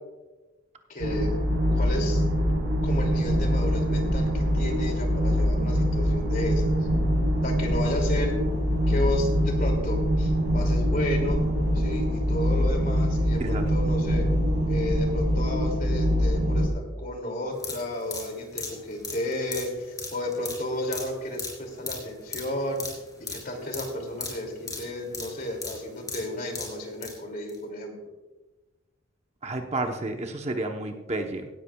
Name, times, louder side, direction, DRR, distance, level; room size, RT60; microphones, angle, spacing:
voice 1, 0.9-1.3 1.7-2.2 2.8-6.7 7.4-8.3 8.9-11.4 11.7-14.3 14.7-22.8 23.3-27.9, left 1 dB, 45° left, 3 dB, 2.6 m, -33 dB
sound 1, 1.0-16.7, equal, 70° right, 4.6 m, -24 dB
sound 2, 17.5-27.2 27.5-27.6, left 4 dB, 20° left, 3.5 m, -38 dB
voice 2, 29.4-31.5, right 2 dB, 30° right, 4 dB, 0.9 m, -31 dB
17.0 x 13.0 x 2.3 m, 1.1 s
head